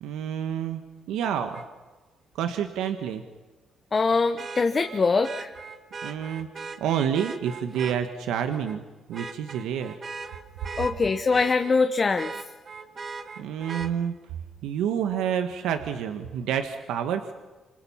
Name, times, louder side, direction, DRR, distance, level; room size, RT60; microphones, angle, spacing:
voice 1, 0.0-0.8 1.1-1.6 2.3-3.2 6.0-8.8 9.1-9.9 13.4-14.1 14.6-17.3, right 9 dB, 90° right, 7 dB, 1.4 m, -28 dB
Vehicle horn car horn honking, 1.5-1.6 4.4-8.0 8.5-8.8 9.1-11.7 12.1-13.9 15.7-15.8, right 4 dB, 40° right, 1.8 m, -39 dB
voice 2, 3.9-5.5 10.8-12.3, left 4 dB, 35° left, 7 dB, 1.0 m, -23 dB
27.0 x 26.5 x 5.8 m, 1.2 s
cardioid pair, 90°, 0 cm